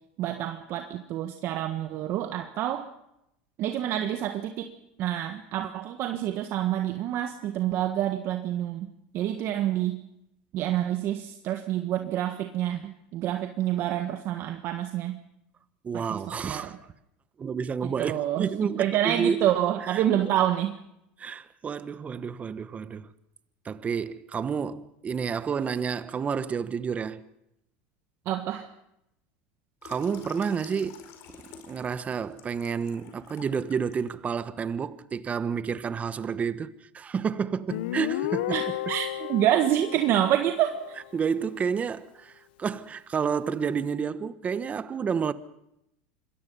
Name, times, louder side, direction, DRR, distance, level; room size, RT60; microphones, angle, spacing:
voice 1, 0.2-2.9 3.6-4.7 5.0-8.9 9.1-10.0 10.5-15.2 15.9-16.8 17.8-18.5 18.8-20.7 28.2-28.7 38.5-41.0, right 12 dB, 50° right, 1.5 m, -27 dB
voice 2, 15.8-16.8 17.4-19.5 19.9-20.3 21.2-23.1 23.6-27.2 29.8-31.0 31.7-38.6 41.1-45.3, right 6 dB, 25° right, 1.2 m, -30 dB
Water tap faucet / Sink (filling or washing), 29.8-34.1 34.6-34.8, left 7 dB, 60° left, 4.8 m, -50 dB
Guitar, 37.7-41.2, left 14 dB, 80° left, 0.8 m, -33 dB
26.0 x 21.5 x 5.6 m
supercardioid pair, 110°, 5 cm